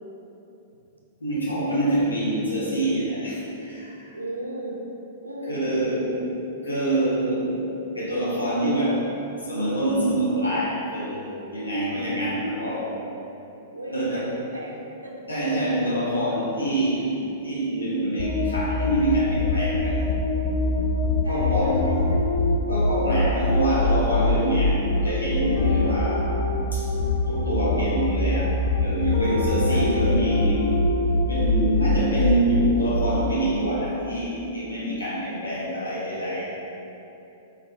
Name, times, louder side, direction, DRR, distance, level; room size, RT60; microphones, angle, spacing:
voice 1, 1.2-4.1 5.5-6.2 6.6-9.1 9.4-13.0 13.9-14.2 15.3-20.1 21.3-21.9 22.7-26.4 26.7-26.9 27.3-30.8 31.3-36.4, right 1 dB, 80° left, -8 dB, 1.0 m, -25 dB
voice 2, 4.1-4.8 5.2-6.3 13.7-15.1 21.2-22.3 29.7-29.9, right 1 dB, 80° right, -2 dB, 0.5 m, -35 dB
sound 1, 18.2-33.3, left 2 dB, 45° left, 0.4 m, -24 dB
3.7 x 3.1 x 2.3 m, 2.9 s
figure-of-eight pair, 105°, 0 cm